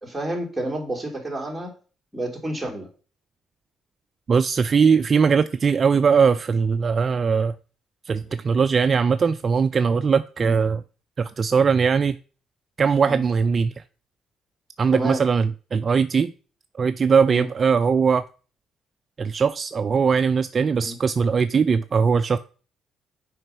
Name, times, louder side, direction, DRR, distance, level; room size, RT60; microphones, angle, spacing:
voice 1, 0.0-1.7 2.1-2.9 5.9-6.1 8.2-8.4 10.4-10.6 13.0-13.2 14.9-15.2 17.3-17.5 20.8-21.0, right 1 dB, 5° right, 2.9 m, -30 dB
voice 2, 4.3-7.6 8.1-10.8 11.2-12.2 12.8-13.8 14.8-16.3 16.8-18.2 19.2-22.4, right 6 dB, 35° right, 0.4 m, -20 dB
7.8 x 5.0 x 5.6 m
cardioid pair, 110°, 0 cm